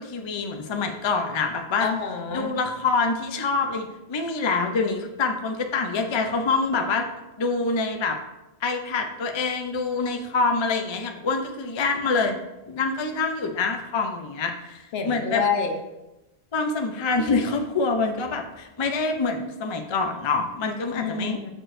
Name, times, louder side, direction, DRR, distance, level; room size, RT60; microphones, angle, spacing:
voice 1, 0.0-1.9 2.3-7.1 7.4-8.2 8.6-12.4 12.7-15.4 16.5-21.4, left 4 dB, 40° left, 4 dB, 0.4 m, -26 dB
voice 2, 1.8-2.5 14.9-15.8 20.9-21.5, left 5 dB, 70° left, 5 dB, 1.0 m, -27 dB
6.6 x 6.2 x 2.5 m, 0.98 s
omnidirectional pair, 1.1 m